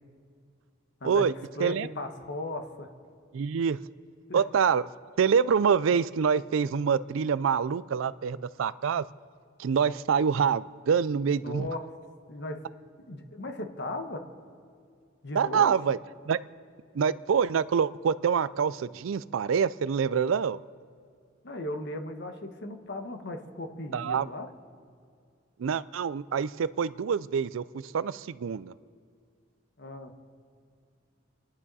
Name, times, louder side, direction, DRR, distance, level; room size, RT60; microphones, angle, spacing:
voice 1, 1.0-2.9 4.3-4.4 11.2-11.9 12.3-12.6 13.1-14.2 15.2-15.7 21.4-24.5 29.8-30.1, left 1 dB, 55° left, 6 dB, 1.3 m, -37 dB
voice 2, 3.3-3.8 4.3-4.9 5.2-9.0 9.6-11.7 15.3-16.0 16.3-16.4 16.9-20.6 23.9-24.3 25.6-28.7, right 6 dB, 75° right, 17 dB, 0.4 m, -26 dB
28.5 x 11.0 x 4.1 m, 2.3 s
head